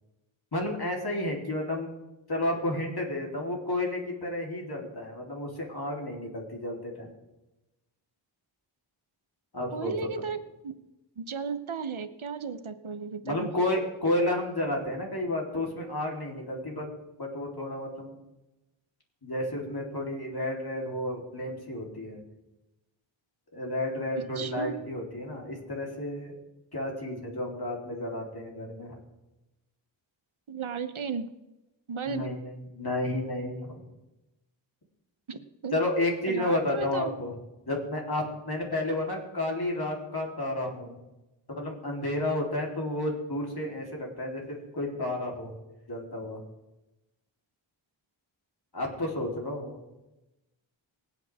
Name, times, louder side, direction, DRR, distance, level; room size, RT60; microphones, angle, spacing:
voice 1, 0.5-1.9 2.3-7.1 9.5-10.1 13.2-16.9 17.2-18.2 19.2-22.2 23.5-26.3 26.7-29.0 32.1-33.8 35.7-37.4 37.7-41.0 41.6-45.6 45.9-46.4 48.7-49.8, left 1 dB, 50° left, -1 dB, 3.7 m, -31 dB
voice 2, 9.7-10.4 10.6-10.8 11.2-13.5 24.4-24.7 30.5-31.3 31.9-32.3 35.3-35.8 36.3-37.1, right 5 dB, 80° right, 10 dB, 1.0 m, -34 dB
24.0 x 8.2 x 3.6 m, 1.0 s
wide cardioid pair, 50°, 48 cm